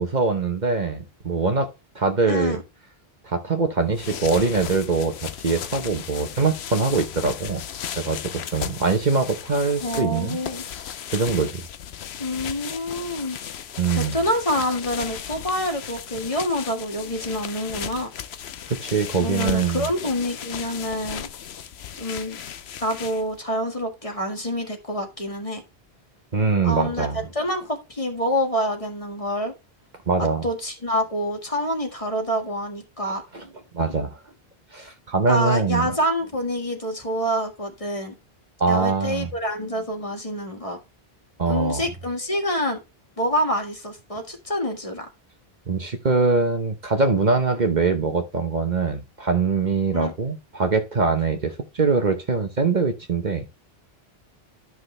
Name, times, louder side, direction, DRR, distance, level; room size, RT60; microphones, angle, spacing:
voice 1, 0.0-1.7 1.9-2.6 3.2-7.6 8.0-10.4 11.1-11.6 13.8-14.3 18.7-19.9 26.3-27.2 30.1-30.5 33.3-33.4 33.7-34.2 34.7-35.9 38.6-39.3 41.4-41.8 45.7-53.5, right 4 dB, 45° right, 1.1 m, -23 dB
voice 2, 2.2-2.6 9.8-10.6 12.2-13.4 13.9-18.1 19.2-21.3 21.9-22.4 22.8-25.6 26.6-27.1 27.3-29.5 30.4-33.2 35.3-38.1 38.7-40.8 41.5-42.8 43.2-45.1 49.9-50.1, equal, 35° left, 1.8 m, -27 dB
sound 1, 3.8-23.4, left 9 dB, 85° left, 1.0 m, -36 dB
12.0 x 6.2 x 3.2 m
omnidirectional pair, 1.1 m